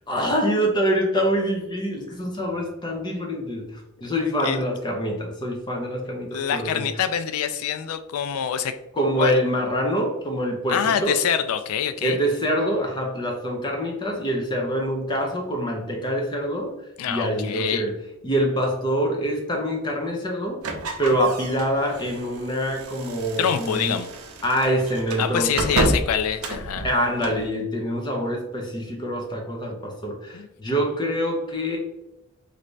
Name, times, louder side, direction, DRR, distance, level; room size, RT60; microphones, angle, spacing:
voice 1, 0.1-6.9 8.9-11.2 12.0-16.7 17.1-17.9 18.2-20.6 21.0-24.0 24.4-26.0 26.8-31.8, equal, 20° left, 0 dB, 0.5 m, -25 dB
voice 2, 6.3-8.8 9.2-9.3 10.7-12.2 17.0-17.9 23.4-24.1 25.2-26.9 30.3-30.5, left 8 dB, 75° left, 10 dB, 0.3 m, -25 dB
sound 1, 20.6-27.5, right 2 dB, 75° right, 0.5 m, -30 dB
3.2 x 2.6 x 3.1 m, 0.91 s
head